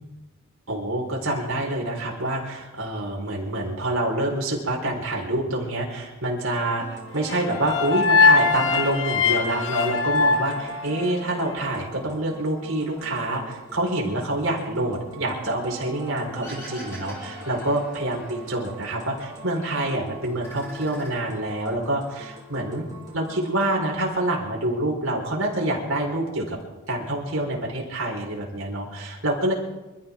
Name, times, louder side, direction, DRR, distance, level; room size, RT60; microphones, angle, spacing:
voice 1, 0.7-22.9 23.1-26.6 26.9-29.5, right 1 dB, 65° right, -1 dB, 4.4 m, -27 dB
sound 1, 6.8-23.8, right 1 dB, 20° right, 3.0 m, -43 dB
sound 2, 7.3-11.5, left 4 dB, 55° left, 1.5 m, -21 dB
sound 3, 16.4-18.8 19.1-19.9 20.2-21.8, left 1 dB, 10° left, 5.4 m, -44 dB
27.0 x 14.0 x 3.7 m, 1.1 s
head